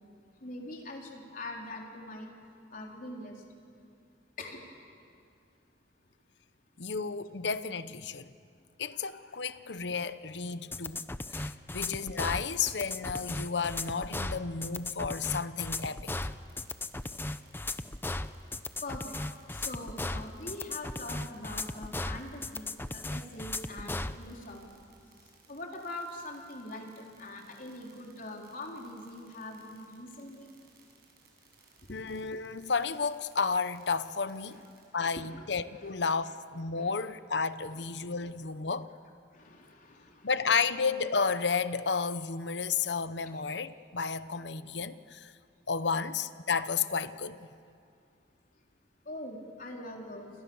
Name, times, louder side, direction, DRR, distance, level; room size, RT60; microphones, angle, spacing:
voice 1, 0.4-2.3 2.7-3.4 4.4-4.6 18.8-19.1 19.5-24.6 25.5-30.5 31.9-32.0 34.5-34.6 34.9-35.4 35.8-36.0 36.7-37.1 37.6-37.8 39.3-40.3 49.1-50.3, left 1 dB, 50° left, 4.0 m, -43 dB
voice 2, 6.8-8.3 8.8-16.3 31.9-34.6 34.9-38.9 40.2-45.3 45.7-47.5, left 5 dB, 70° left, 0.9 m, -32 dB
sound 1, 10.7-24.2, left 2 dB, 10° left, 0.7 m, -36 dB
sound 2, 16.3-34.8, right 6 dB, 60° right, 7.4 m, -63 dB
29.0 x 28.0 x 7.2 m
head